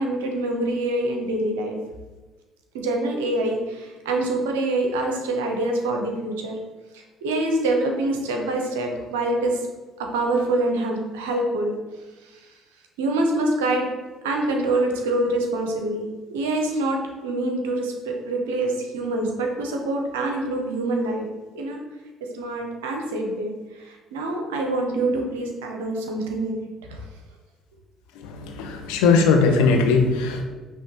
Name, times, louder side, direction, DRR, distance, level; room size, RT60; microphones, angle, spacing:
voice 1, 0.0-1.8 2.7-6.6 6.9-9.6 10.0-11.7 12.2-12.3 13.0-13.9 14.2-21.3 21.5-21.8 22.3-26.6 26.9-27.0, right 2 dB, 85° right, 2 dB, 0.7 m, -25 dB
voice 2, 28.4-30.4, left 4 dB, 80° left, 4 dB, 0.6 m, -19 dB
5.6 x 3.1 x 2.9 m, 1.3 s
hypercardioid pair, 60°, 0 cm